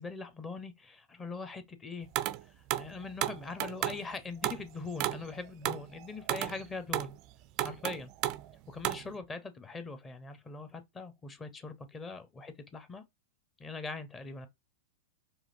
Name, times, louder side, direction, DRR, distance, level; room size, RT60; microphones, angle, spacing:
voice 1, 0.0-2.1 2.8-7.1 7.6-8.1 8.7-13.0 13.6-14.5, left 3 dB, 20° left, 1.0 m, -42 dB
sound 1, 2.1-2.4 2.7-4.0 4.4-4.7 5.0-7.2 7.6-8.5 8.8-9.1, right 15 dB, 45° right, 0.4 m, -33 dB
4.8 x 3.0 x 2.7 m
hypercardioid pair, 120°, 0 cm